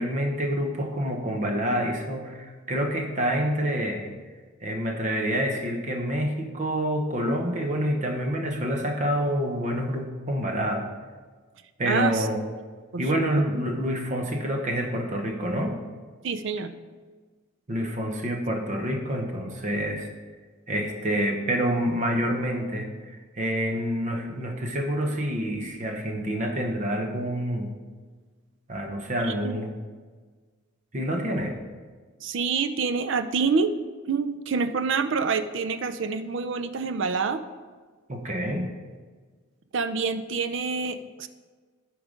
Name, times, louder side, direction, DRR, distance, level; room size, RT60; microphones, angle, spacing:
voice 1, 0.0-4.1 4.6-10.9 11.8-12.4 13.0-15.8 17.7-20.1 20.7-27.7 28.7-29.7 30.9-31.5 38.1-38.7, equal, 35° right, 3 dB, 0.9 m, -27 dB
voice 2, 11.9-12.3 12.9-13.2 16.2-16.7 29.2-29.5 32.2-33.7 34.1-37.4 39.7-41.3, right 5 dB, 60° right, 10 dB, 0.5 m, -27 dB
9.0 x 4.7 x 5.1 m, 1.4 s
head